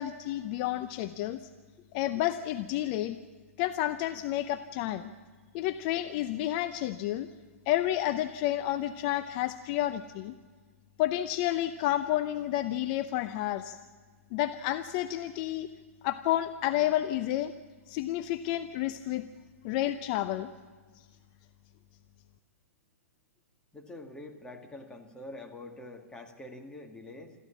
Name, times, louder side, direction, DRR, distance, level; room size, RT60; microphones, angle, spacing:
voice 1, 0.0-1.4 1.9-3.2 3.6-5.1 5.5-7.3 7.7-10.3 11.0-13.8 14.3-15.7 16.0-17.5 17.9-19.2 19.6-20.5, left 13 dB, 40° left, 10 dB, 0.7 m, -30 dB
voice 2, 23.7-27.4, left 2 dB, 10° left, 2 dB, 2.2 m, -45 dB
26.0 x 14.5 x 7.3 m, 1.5 s
hypercardioid pair, 120°, 8 cm